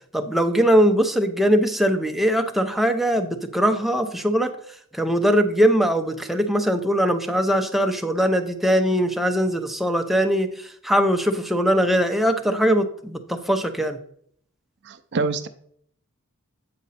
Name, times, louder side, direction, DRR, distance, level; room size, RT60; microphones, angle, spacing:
voice 1, 0.1-4.5 4.9-14.0, equal, ahead, 5 dB, 0.6 m, -21 dB
voice 2, 14.8-15.5, right 3 dB, 55° right, 9 dB, 0.5 m, -26 dB
8.4 x 5.3 x 4.1 m, 0.64 s
head